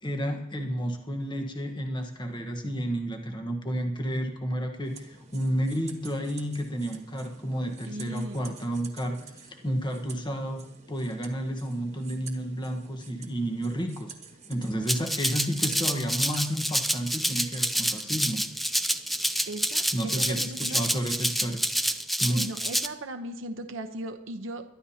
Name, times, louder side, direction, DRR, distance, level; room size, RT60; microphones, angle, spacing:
voice 1, 0.0-14.1 14.5-18.4 19.9-21.6 22.2-22.5, equal, 25° left, 3 dB, 1.2 m, -31 dB
sound 1, 4.8-22.1, right 5 dB, 35° right, 1.5 m, -49 dB
voice 2, 7.9-8.4 19.5-20.8 22.3-24.6, right 1 dB, 65° right, 5 dB, 0.9 m, -37 dB
Rattle (instrument), 14.9-22.9, equal, ahead, 0.5 m, -28 dB
23.0 x 12.5 x 2.9 m, 0.86 s
head